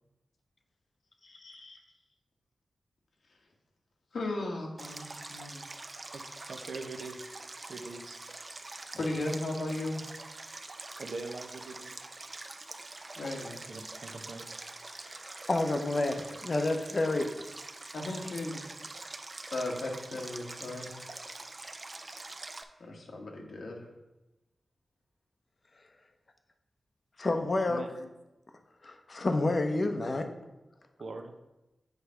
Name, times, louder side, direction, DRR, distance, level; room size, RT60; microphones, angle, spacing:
voice 1, 1.4-1.8 4.1-5.6 8.9-10.0 13.2-13.6 17.9-18.6 19.5-20.9 22.8-23.8, left 2 dB, 75° left, 1 dB, 1.4 m, -36 dB
Stream, 4.8-22.6, right 2 dB, 35° right, 0.6 m, -45 dB
voice 2, 6.1-7.2 7.7-8.2 11.0-12.0 13.7-14.5 27.7-27.9 31.0-31.3, right 3 dB, 70° right, 3 dB, 0.7 m, -42 dB
voice 3, 15.1-17.3 27.2-27.8 28.8-30.3, left 2 dB, 45° left, 6 dB, 0.8 m, -29 dB
7.9 x 3.3 x 5.7 m, 1.0 s
wide cardioid pair, 80°, 0 cm